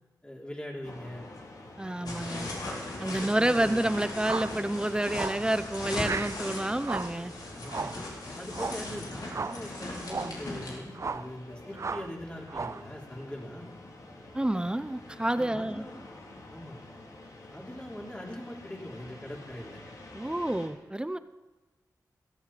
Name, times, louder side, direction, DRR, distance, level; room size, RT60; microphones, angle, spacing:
voice 1, 0.2-1.3 2.0-2.8 3.1-3.9 7.6-8.0 8.3-13.8 15.3-16.0 16.5-16.8 17.5-19.8, left 1 dB, 20° left, -2 dB, 3.8 m, -42 dB
sound 1, 0.8-20.7, left 2 dB, 60° left, 3.0 m, -49 dB
voice 2, 1.8-2.5 3.0-7.3 14.3-15.9 20.1-21.2, right 1 dB, 15° right, 12 dB, 0.8 m, -29 dB
sound 2, 2.1-10.8, left 2 dB, 80° left, 4.1 m, -38 dB
sound 3, 4.2-4.6 5.1-5.5 6.0-6.4 6.8-7.2 7.7-8.0 8.5-8.9 9.3-9.6 10.0-10.4 10.9-11.3 11.8-12.1 12.5-12.9, right 4 dB, 45° right, 0.5 m, -35 dB
16.5 x 14.0 x 4.4 m, 1.2 s
cardioid pair, 60°, 7 cm